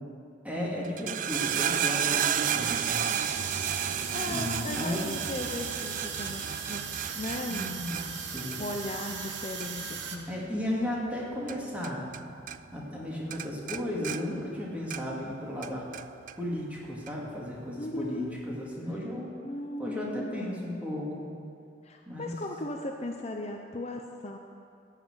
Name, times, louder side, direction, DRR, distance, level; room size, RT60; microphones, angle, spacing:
voice 1, 0.4-3.1 4.3-5.1 7.5-8.6 10.3-12.1 12.7-15.8 16.4-19.3 19.8-21.3 22.1-22.4, left 1 dB, 10° right, -4 dB, 2.3 m, -34 dB
sound 1, 0.8-12.2 12.5-13.0 13.3-15.3 15.6-16.4 17.1-17.2, right 9 dB, 45° right, 0.3 m, -33 dB
sound 2, 1.3-10.2, right 6 dB, 70° right, 1.1 m, -38 dB
voice 2, 4.1-6.9 7.1-7.9 8.6-10.3 17.8-18.3 19.4-20.8 21.8-24.4, left 1 dB, 35° left, 3 dB, 0.7 m, -37 dB
15.0 x 5.9 x 8.0 m, 2.4 s
head